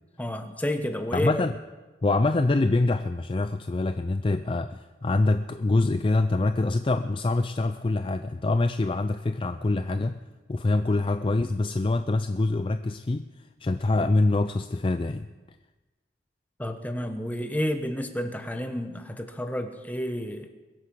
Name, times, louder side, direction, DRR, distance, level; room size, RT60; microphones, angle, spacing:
voice 1, 0.2-1.4 16.6-20.5, equal, 10° left, 6 dB, 1.1 m, -30 dB
voice 2, 1.1-1.5 2.0-10.2 10.5-13.2 13.6-15.3, left 2 dB, 30° left, 10 dB, 0.4 m, -25 dB
22.0 x 8.3 x 6.1 m, 1.2 s
head